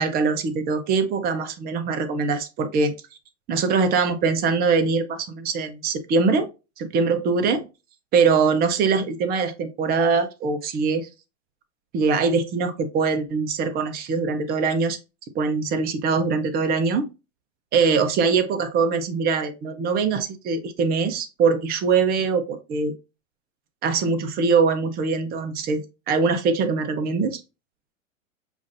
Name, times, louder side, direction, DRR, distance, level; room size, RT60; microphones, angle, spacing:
voice 1, 0.0-2.9 3.5-6.5 6.8-7.6 8.1-11.1 11.9-15.0 15.3-17.1 17.7-22.9 23.8-27.4, right 5 dB, 25° right, 0.7 m, -22 dB
7.0 x 2.5 x 2.5 m
hypercardioid pair, 120°, 39 cm